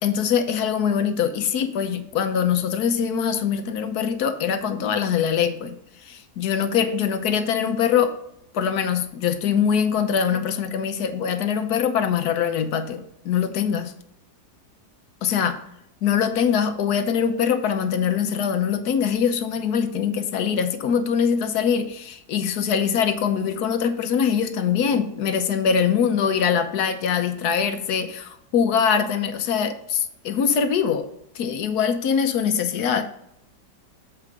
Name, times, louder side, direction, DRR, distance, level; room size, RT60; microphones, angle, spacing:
voice 1, 0.0-5.8 6.0-8.1 8.5-13.9 15.2-15.6 16.0-31.1 31.3-33.0, left 7 dB, 70° left, 1.3 m, -23 dB
7.6 x 4.7 x 5.1 m
omnidirectional pair, 1.8 m